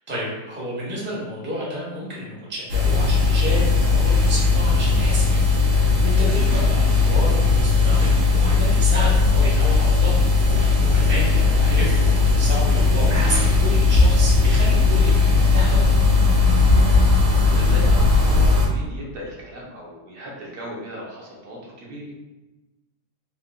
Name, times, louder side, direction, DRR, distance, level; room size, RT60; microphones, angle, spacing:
voice 1, 0.1-5.4 5.8-10.2 10.4-15.8, equal, 10° right, -6 dB, 0.6 m, -31 dB
sound 1, 2.7-18.7, left 3 dB, 90° right, 1.5 m, -17 dB
voice 2, 16.8-22.1, equal, 70° right, -4 dB, 1.2 m, -37 dB
3.8 x 2.8 x 2.3 m, 1.1 s
omnidirectional pair, 1.9 m